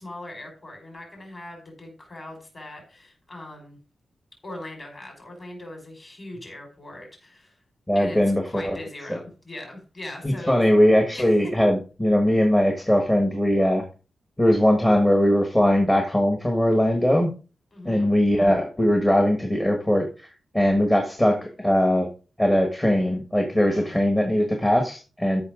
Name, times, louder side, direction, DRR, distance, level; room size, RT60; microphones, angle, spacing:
voice 1, 0.0-3.8 4.4-7.6 7.9-8.2 8.5-10.6 11.1-11.2 17.7-18.1 23.7-23.9, left 1 dB, 30° left, 1 dB, 5.3 m, -40 dB
voice 2, 7.9-8.8 9.1-9.2 10.2-13.8 14.4-17.3 17.8-22.1 22.4-25.4, equal, 10° left, 3 dB, 1.5 m, -20 dB
14.0 x 5.9 x 3.8 m, 0.34 s
wide cardioid pair, 135°, 0 cm